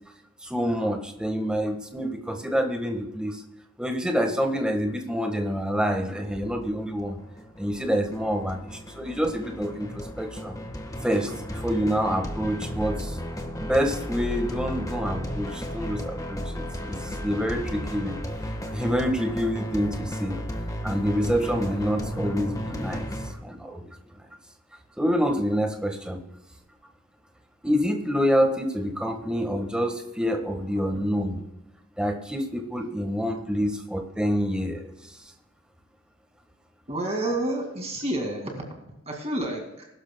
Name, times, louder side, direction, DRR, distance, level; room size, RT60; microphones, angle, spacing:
voice 1, 0.4-3.4 3.8-7.2 7.6-10.6 11.0-13.2 13.6-18.1 18.7-20.4 20.8-24.0 25.0-26.2 27.6-31.4 32.0-35.3, equal, 5° right, 4 dB, 1.4 m, -27 dB
sound 1, 6.2-23.3, equal, 15° left, 1.3 m, -34 dB
voice 2, 36.9-38.6 39.1-39.9, right 1 dB, 30° right, 2 dB, 2.1 m, -29 dB
21.5 x 12.0 x 2.2 m, 0.93 s
head